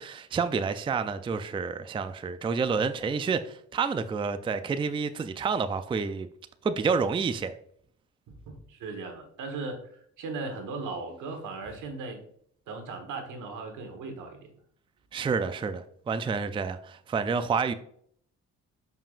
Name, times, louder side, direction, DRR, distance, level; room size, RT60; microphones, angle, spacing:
voice 1, 0.0-6.3 6.6-7.5 15.1-17.7, right 5 dB, 15° right, 0.4 m, -29 dB
voice 2, 8.3-9.9 10.2-12.2 12.7-14.4, right 3 dB, 85° right, 1.5 m, -37 dB
6.9 x 5.6 x 2.5 m
cardioid pair, 90°, 30 cm